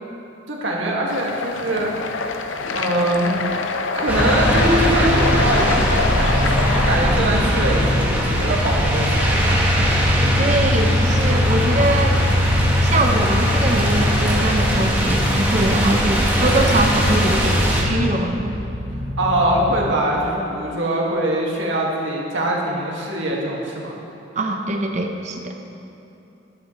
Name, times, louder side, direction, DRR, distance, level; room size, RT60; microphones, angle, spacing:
voice 1, 0.5-1.9 2.7-3.3 3.9-10.4 19.2-24.0, right 1 dB, 75° right, -3 dB, 1.9 m, -23 dB
sound 1, 1.1-7.0, left 4 dB, 75° left, 0.6 m, -25 dB
sound 2, 4.1-19.9, left 1 dB, 15° left, 0.8 m, -25 dB
sound 3, 4.1-17.8, equal, 10° right, 1.3 m, -20 dB
voice 2, 10.4-12.2 12.8-18.6 24.4-25.5, right 1 dB, 35° right, 3 dB, 0.8 m, -22 dB
12.5 x 11.5 x 3.1 m, 2.9 s
head